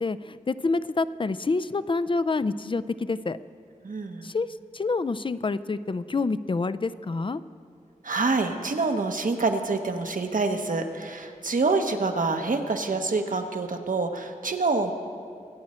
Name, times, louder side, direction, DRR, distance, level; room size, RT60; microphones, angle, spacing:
voice 1, 0.0-3.4 4.2-4.5 4.7-7.4, left 3 dB, 40° left, 14 dB, 0.4 m, -27 dB
voice 2, 3.8-4.3 8.0-14.9, right 3 dB, 75° right, 5 dB, 1.0 m, -26 dB
24.5 x 8.6 x 4.3 m, 2.4 s
wide cardioid pair, 75°, 14 cm